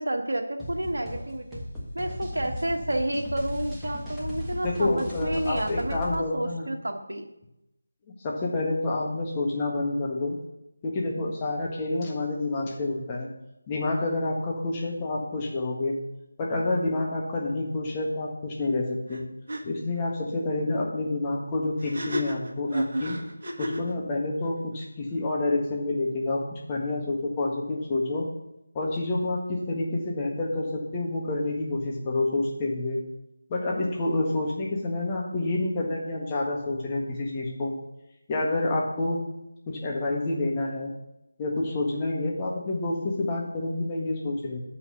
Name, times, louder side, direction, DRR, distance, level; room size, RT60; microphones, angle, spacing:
voice 1, 0.0-1.6 1.9-7.3, right 1 dB, 70° right, 3 dB, 1.6 m, -30 dB
sound 1, 0.6-6.2, left 1 dB, ahead, 1.4 m, -36 dB
voice 2, 4.6-6.7 8.1-10.4 10.8-13.3 13.7-16.0 16.4-19.3 19.6-23.2 23.6-28.3 28.7-33.0 33.5-37.8 38.3-39.2 39.7-40.9 41.4-44.6, left 2 dB, 20° left, -2 dB, 1.5 m, -28 dB
sound 2, 19.1-19.2 19.5-19.6 21.8-23.9, right 1 dB, 50° right, 1.4 m, -31 dB
6.8 x 5.6 x 6.9 m, 0.86 s
figure-of-eight pair, 165°, 0 cm